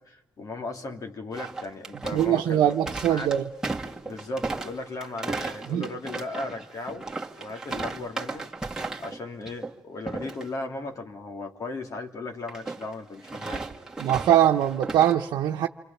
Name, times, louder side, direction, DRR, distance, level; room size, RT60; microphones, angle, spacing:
voice 1, 0.0-2.8 3.0-3.3 4.0-7.0 7.3-8.5 9.0-13.6, left 2 dB, 50° left, 2.9 m, -36 dB
sound 1, 1.3-9.2 9.5-9.7 10.1-10.4 12.5-15.1, right 3 dB, 10° right, 2.5 m, -35 dB
voice 2, 2.1-3.5 5.7-5.9 14.0-15.7, right 11 dB, 90° right, 0.9 m, -22 dB
29.5 x 24.5 x 7.2 m
cardioid pair, 95°, 7 cm